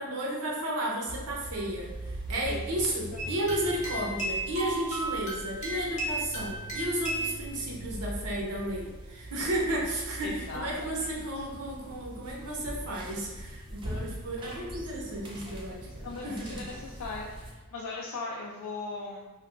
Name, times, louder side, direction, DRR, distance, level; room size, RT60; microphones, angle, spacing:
voice 1, 0.0-16.7, right 1 dB, 85° right, -3 dB, 0.7 m, -33 dB
sound 1, 1.1-17.5, right 1 dB, 20° right, 0.4 m, -42 dB
sound 2, 3.2-7.4, right 1 dB, 30° left, 0.7 m, -34 dB
voice 2, 10.2-10.7 11.0-11.1 13.8-14.5 15.5-15.6 15.9-19.3, left 3 dB, 75° left, -3 dB, 0.3 m, -39 dB
2.8 x 2.2 x 2.4 m, 1.3 s
head